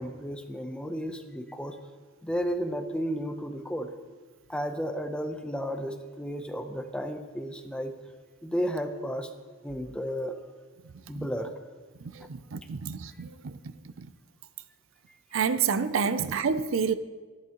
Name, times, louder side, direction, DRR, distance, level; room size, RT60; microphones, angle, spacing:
voice 1, 0.0-1.8 2.2-3.9 4.5-7.9 8.4-9.3 9.6-10.4 11.1-11.5, equal, 5° left, 0.7 m, -33 dB
voice 2, 12.1-13.5 15.3-16.9, right 6 dB, 60° right, 0.5 m, -28 dB
13.5 x 11.0 x 3.0 m
head